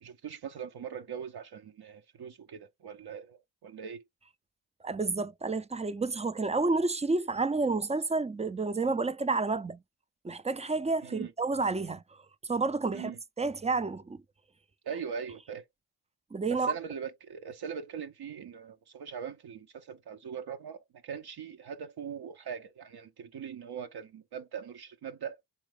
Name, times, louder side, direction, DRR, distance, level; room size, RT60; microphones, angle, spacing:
voice 1, 0.0-4.0 11.0-11.3 12.9-13.2 14.8-15.7 16.5-25.4, right 7 dB, 55° right, 0.7 m, -41 dB
voice 2, 4.8-9.8 10.2-12.2 12.5-13.1 13.4-14.2 16.3-16.7, right 3 dB, 15° right, 0.4 m, -30 dB
3.8 x 3.4 x 3.3 m
supercardioid pair, 45°, 45 cm